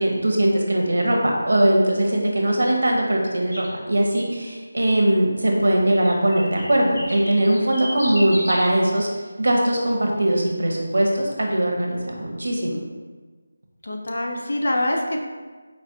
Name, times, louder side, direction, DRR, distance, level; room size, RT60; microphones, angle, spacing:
voice 1, 0.0-9.1 9.4-12.8, right 1 dB, 70° right, 0 dB, 0.9 m, -20 dB
sound 1, 3.5-3.7 6.0-8.7, equal, 65° left, 1.2 m, -33 dB
voice 2, 13.8-15.2, left 1 dB, 45° left, 1 dB, 0.5 m, -24 dB
4.4 x 3.3 x 2.7 m, 1.4 s
figure-of-eight pair, 180°, 0 cm